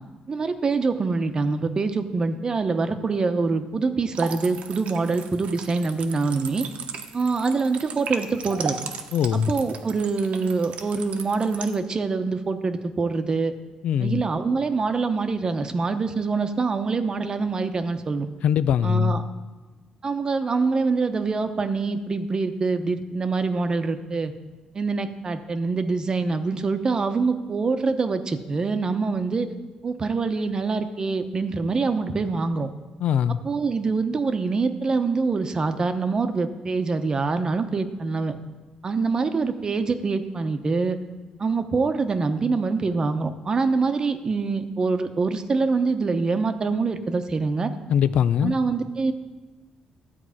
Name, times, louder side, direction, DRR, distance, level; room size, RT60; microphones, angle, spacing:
voice 1, 0.3-6.7 7.1-8.8 9.3-13.5 14.0-18.3 18.8-19.2 20.0-24.3 24.7-29.5 29.8-32.7 33.4-38.4 38.8-41.0 41.4-47.7 48.4-49.1, right 4 dB, 35° right, 0.9 m, -25 dB
sound 1, 4.1-11.8, right 6 dB, 75° right, 1.0 m, -36 dB
voice 2, 9.1-9.5 13.8-14.2 18.4-19.2 33.0-33.4 47.9-48.6, left 8 dB, 75° left, 0.4 m, -21 dB
12.5 x 4.7 x 8.5 m
cardioid pair, 105°, 2 cm